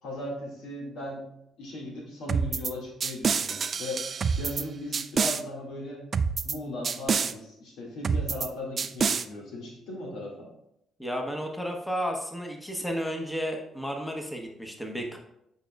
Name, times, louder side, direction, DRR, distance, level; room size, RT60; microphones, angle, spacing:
voice 1, 0.0-1.3 1.6-4.0 4.4-6.0 6.4-10.5, left 1 dB, 85° left, -2 dB, 2.0 m, -37 dB
sound 1, 2.3-2.7 3.0-4.6 4.9-5.4 6.1-6.6 6.8-7.3 8.0-8.5 8.8-9.2, right 6 dB, 45° right, 0.3 m, -27 dB
voice 2, 11.0-15.2, equal, 5° left, 2 dB, 1.0 m, -32 dB
8.6 x 5.1 x 2.4 m, 0.79 s
cardioid pair, 90°, 0 cm